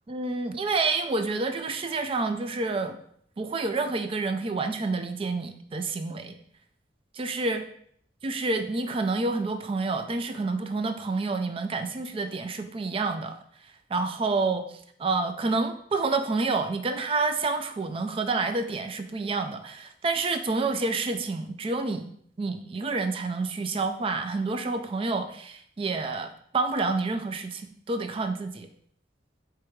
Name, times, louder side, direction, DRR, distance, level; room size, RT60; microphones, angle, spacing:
voice 1, 0.1-3.0 3.4-6.4 7.1-7.6 8.2-13.4 13.9-28.7, right 3 dB, 30° right, 8 dB, 0.4 m, -28 dB
4.9 x 3.4 x 3.1 m, 0.65 s
head